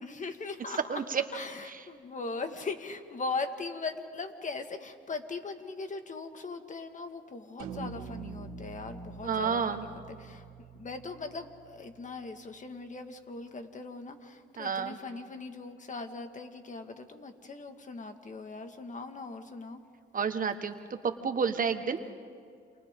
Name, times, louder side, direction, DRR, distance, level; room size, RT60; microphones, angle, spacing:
voice 1, 0.0-1.0 1.3-10.4 10.7-19.8 22.0-22.1, left 3 dB, 40° left, 7 dB, 1.9 m, -40 dB
voice 2, 0.9-1.2 1.7-1.8 9.2-9.8 14.6-15.0 20.1-22.0, right 6 dB, 45° right, 7 dB, 1.4 m, -30 dB
sound 1, 7.6-12.1, right 5 dB, 85° right, 2.3 m, -44 dB
29.0 x 27.0 x 3.8 m, 2.2 s
cardioid pair, 80°, 20 cm